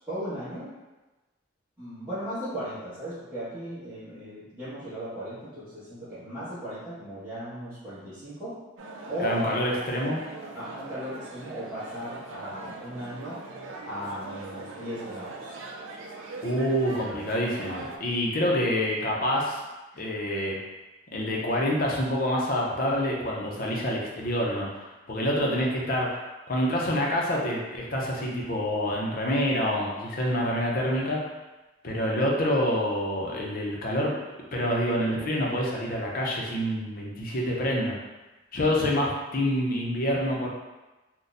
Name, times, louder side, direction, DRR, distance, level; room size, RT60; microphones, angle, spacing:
voice 1, 0.1-0.7 1.8-8.5 9.1-9.4 10.5-13.4 13.8-15.6, equal, 10° right, -19 dB, 1.4 m, -37 dB
sound 1, 8.8-18.0, right 2 dB, 85° right, 0.4 m, -40 dB
voice 2, 9.2-10.2 16.4-19.6 20.0-20.6 21.1-26.2 26.5-31.2 31.8-34.1 34.5-38.0 38.5-40.5, equal, 50° left, -2 dB, 0.6 m, -27 dB
4.0 x 2.2 x 2.5 m, 1.1 s
head